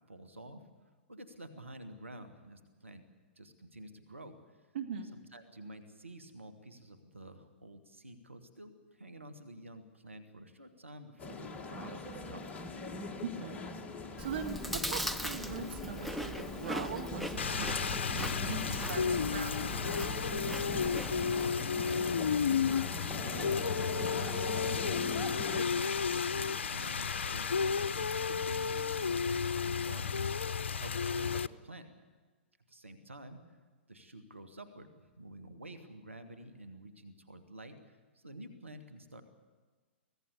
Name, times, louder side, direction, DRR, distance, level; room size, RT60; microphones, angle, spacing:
voice 1, 0.0-3.1 3.4-4.7 5.1-12.8 20.7-25.1 25.5-30.3 30.8-31.9 32.7-33.4 33.9-39.2, right 1 dB, 90° right, 8 dB, 2.4 m, -50 dB
voice 2, 4.7-5.1 13.2-13.6 14.2-17.8 18.1-19.7, right 6 dB, 60° right, 4 dB, 1.9 m, -41 dB
sound 1, 11.2-25.7, left 3 dB, 20° left, 1.8 m, -42 dB
Chewing mastication, 14.2-21.5, equal, ahead, 0.8 m, -41 dB
Rain, 17.4-31.5, left 6 dB, 70° left, 0.6 m, -32 dB
24.5 x 16.5 x 8.6 m, 1.4 s
figure-of-eight pair, 110°, 7 cm